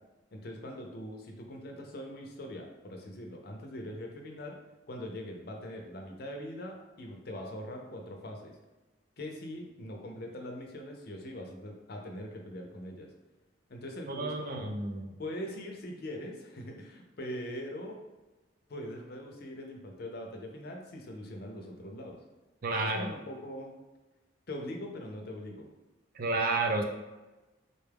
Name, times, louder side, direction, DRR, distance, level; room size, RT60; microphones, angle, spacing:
voice 1, 0.3-4.6 4.9-8.5 9.2-13.1 13.7-14.7 15.2-18.0 18.7-22.2 22.8-23.7 24.5-25.7, left 1 dB, 50° left, 2 dB, 0.5 m, -42 dB
voice 2, 14.1-15.0 22.6-23.1 26.2-26.8, right 3 dB, 45° right, 3 dB, 0.4 m, -30 dB
4.0 x 2.3 x 3.4 m, 1.1 s
head